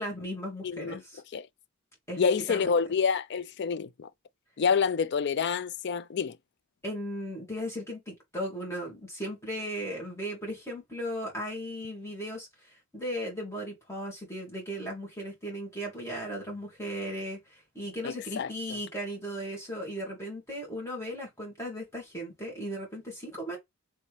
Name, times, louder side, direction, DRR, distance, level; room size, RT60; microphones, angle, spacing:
voice 1, 0.0-1.2 2.1-2.6 6.8-23.6, equal, 15° left, 2.3 m, -37 dB
voice 2, 0.6-1.0 1.3-1.5 2.2-4.1 4.6-6.4 18.0-18.5, left 6 dB, 55° left, 0.4 m, -28 dB
4.1 x 3.4 x 3.2 m
head